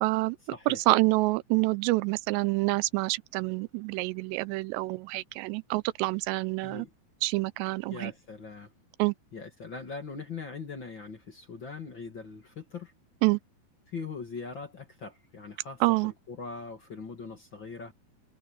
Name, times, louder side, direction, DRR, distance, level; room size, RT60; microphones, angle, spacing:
voice 1, 0.0-0.4 0.7-6.9 7.2-8.1 9.0-9.1 13.2-13.4 15.8-16.1, right 22 dB, 90° right, 2.8 m, -27 dB
voice 2, 0.5-0.8 6.6-6.9 7.9-8.7 9.3-12.9 13.9-17.9, left 4 dB, 40° left, 1.8 m, -41 dB
omnidirectional pair, 4.9 m